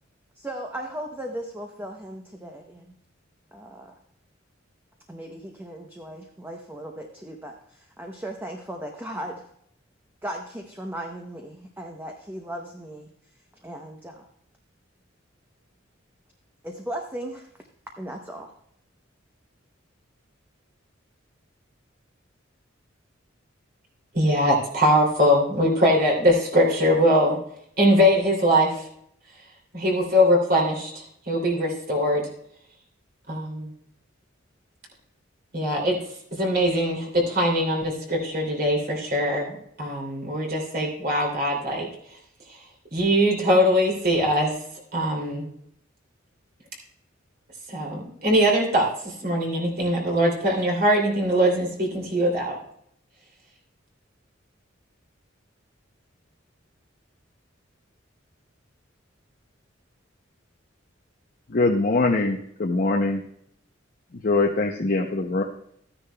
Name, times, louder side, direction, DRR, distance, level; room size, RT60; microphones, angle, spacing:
voice 1, 0.4-2.8 3.5-3.9 5.1-9.4 10.2-13.1 13.6-14.3 16.6-17.5 18.0-18.5, right 1 dB, 10° right, 1 dB, 0.8 m, -37 dB
voice 2, 24.1-27.4 27.8-28.8 29.7-32.3 33.3-33.7 35.5-36.0 36.3-41.9 42.9-44.5 44.9-45.5 47.7-52.6, equal, 50° right, -1 dB, 2.8 m, -22 dB
voice 3, 61.5-63.2 64.2-65.4, left 3 dB, 45° left, 1 dB, 0.7 m, -22 dB
14.0 x 9.9 x 2.3 m, 0.70 s
head